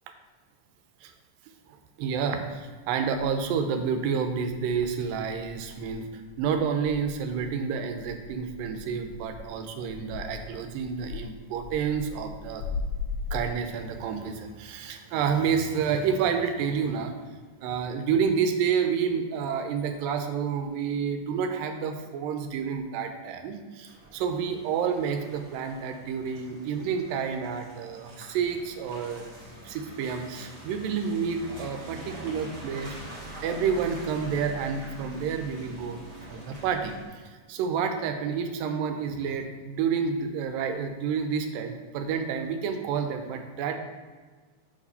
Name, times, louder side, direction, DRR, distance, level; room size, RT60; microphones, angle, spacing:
voice 1, 1.7-12.6 13.3-17.1 17.6-33.0 33.4-36.0 36.3-37.2 37.5-43.8, right 6 dB, 85° right, 7 dB, 2.3 m, -29 dB
sound 1, 2.5-2.6 3.1-3.8 4.2-13.5, left 5 dB, 85° left, 1.7 m, -39 dB
Car passing by / Engine, 23.9-37.1, right 1 dB, 45° right, 1.3 m, -44 dB
5.0 x 4.9 x 5.4 m, 1.4 s
omnidirectional pair, 4.0 m